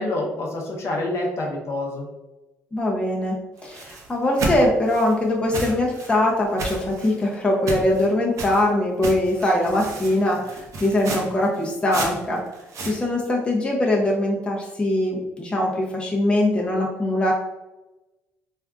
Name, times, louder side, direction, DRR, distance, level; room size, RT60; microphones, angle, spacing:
voice 1, 0.0-2.1, left 2 dB, 50° left, -1 dB, 0.7 m, -27 dB
voice 2, 2.7-3.4 3.6-12.4 12.8-17.3, left 1 dB, 20° left, -2 dB, 0.6 m, -22 dB
sound 1, 3.6-5.1 5.5-6.1 6.6-7.2 7.7-8.1 8.4-8.7 9.0-13.0, right 2 dB, 60° right, 0.6 m, -32 dB
3.3 x 2.3 x 2.3 m, 1.0 s
supercardioid pair, 65°, 6 cm